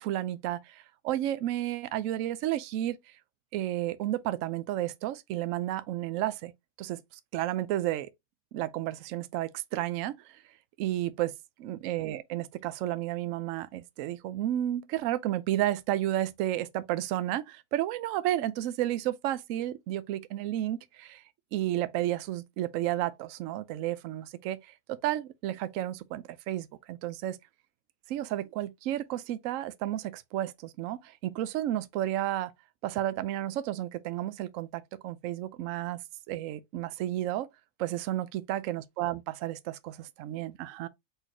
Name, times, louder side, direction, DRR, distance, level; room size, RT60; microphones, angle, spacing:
voice 1, 0.0-3.2 3.5-6.5 6.8-7.0 7.3-8.1 8.5-10.4 10.8-11.3 11.6-21.2 21.5-27.4 28.1-32.5 32.8-36.0 36.3-37.5 37.8-40.9, right 13 dB, 70° right, 0.8 m, -32 dB
4.1 x 4.0 x 2.8 m
omnidirectional pair, 1.7 m